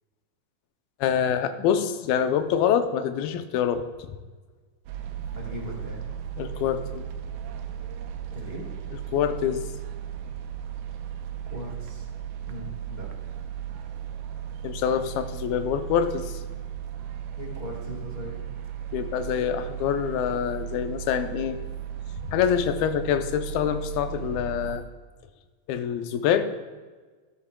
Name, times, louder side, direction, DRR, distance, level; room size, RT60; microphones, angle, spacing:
voice 1, 1.0-4.1 6.4-7.0 8.9-9.6 14.6-16.4 18.9-21.6 22.3-24.8 25.7-26.4, left 8 dB, 85° left, 8 dB, 2.5 m, -26 dB
sound 1, 4.9-24.8, right 9 dB, 85° right, 2.4 m, -36 dB
voice 2, 5.3-6.1 8.3-8.7 11.5-12.0 12.4-13.1 17.4-18.4, left 1 dB, 55° left, -3 dB, 0.6 m, -39 dB
12.5 x 11.5 x 2.2 m, 1.4 s
omnidirectional pair, 4.2 m